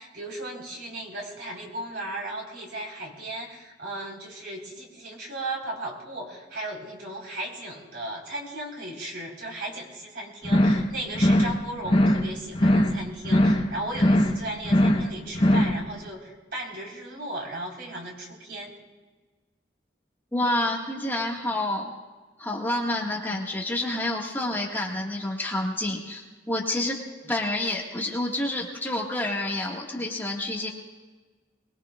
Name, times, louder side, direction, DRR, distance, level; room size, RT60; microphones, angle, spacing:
voice 1, 0.0-18.8, right 1 dB, 65° right, -2 dB, 4.3 m, -36 dB
sound 1, 10.4-10.9 11.1-11.6 11.8-12.3 12.5-13.0 13.2-13.7 13.9-14.4 14.6-15.1 15.3-15.8, left 1 dB, 30° left, 1.1 m, -20 dB
voice 2, 20.3-21.9 22.4-30.7, left 1 dB, 10° left, -2 dB, 1.8 m, -28 dB
23.5 x 21.0 x 2.4 m, 1.3 s
head